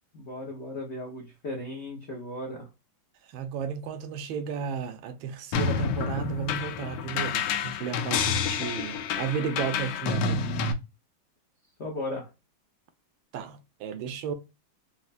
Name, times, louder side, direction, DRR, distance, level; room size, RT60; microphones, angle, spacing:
voice 1, 0.1-2.7 11.8-12.3, left 1 dB, 65° left, 0.6 m, -36 dB
voice 2, 3.3-10.5 13.3-14.3, right 7 dB, 80° right, 1.3 m, -33 dB
sound 1, 5.5-10.7, left 6 dB, 85° left, 1.4 m, -29 dB
4.2 x 2.1 x 2.4 m
omnidirectional pair, 2.2 m